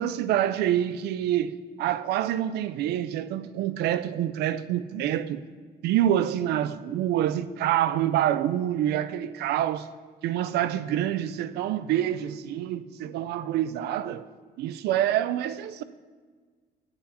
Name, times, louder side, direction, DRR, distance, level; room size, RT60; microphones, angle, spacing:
voice 1, 0.0-5.4 5.8-9.9 10.2-14.2 14.6-15.8, right 11 dB, 75° right, 0.5 m, -26 dB
9.4 x 8.0 x 4.2 m
cardioid pair, 110°, 17 cm